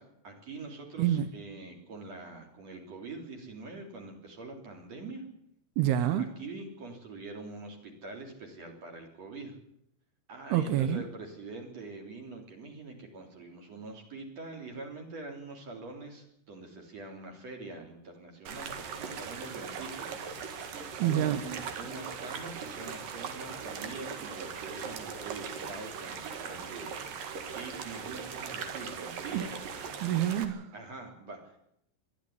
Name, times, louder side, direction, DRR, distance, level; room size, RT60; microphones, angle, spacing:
voice 1, 0.0-5.2 6.2-9.6 10.3-20.1 20.5-29.5 30.7-31.7, right 3 dB, 45° right, 2 dB, 4.5 m, -44 dB
voice 2, 5.8-6.3 10.5-11.0 21.0-21.4 29.3-29.5 30.0-30.7, right 11 dB, 85° right, 11 dB, 3.0 m, -27 dB
sound 1, 18.5-30.5, right 6 dB, 65° right, 3.5 m, -40 dB
21.5 x 13.0 x 9.9 m, 0.74 s
omnidirectional pair, 4.4 m